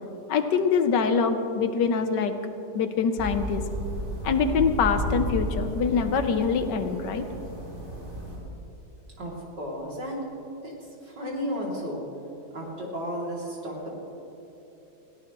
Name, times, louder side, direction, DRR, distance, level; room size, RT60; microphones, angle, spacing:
voice 1, 0.3-2.3 2.8-3.6 4.2-7.3, left 5 dB, 85° left, 8 dB, 1.6 m, -24 dB
sound 1, 3.2-8.4, equal, 50° right, 4.9 m, -33 dB
voice 2, 9.2-10.2 10.6-10.7 11.0-12.0 12.5-13.9, equal, 85° right, -3 dB, 3.6 m, -33 dB
21.0 x 16.5 x 3.1 m, 3.0 s
omnidirectional pair, 1.8 m